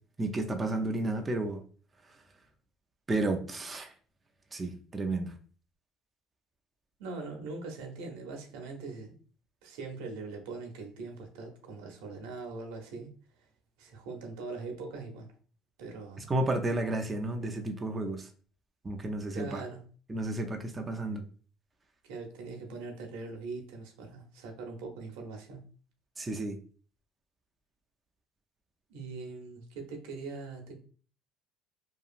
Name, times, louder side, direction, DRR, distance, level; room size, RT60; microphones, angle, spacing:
voice 1, 0.2-1.6 3.1-3.9 4.5-5.3 16.3-18.3 18.8-19.6 20.1-21.2 26.2-26.6, right 2 dB, 20° right, 0.4 m, -32 dB
voice 2, 7.0-9.2 9.6-13.1 13.8-15.3 15.8-16.3 19.3-19.8 22.0-25.6 28.9-30.7, right 3 dB, 90° right, 0.7 m, -41 dB
2.8 x 2.3 x 2.4 m
cardioid pair, 115°, 0 cm